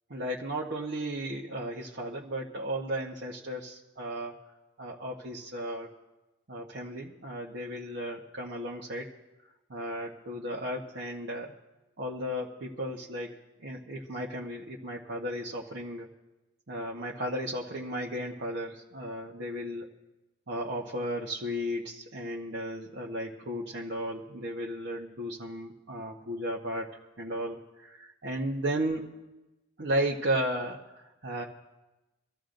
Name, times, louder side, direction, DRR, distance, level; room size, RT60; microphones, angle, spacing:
voice 1, 0.1-4.3 4.8-5.9 6.5-9.1 9.7-11.5 12.0-13.3 13.6-16.1 16.7-19.8 20.5-26.9 27.2-29.1 29.8-31.4, equal, 60° right, -4 dB, 1.1 m, -34 dB
25.5 x 14.0 x 2.6 m, 1.1 s
head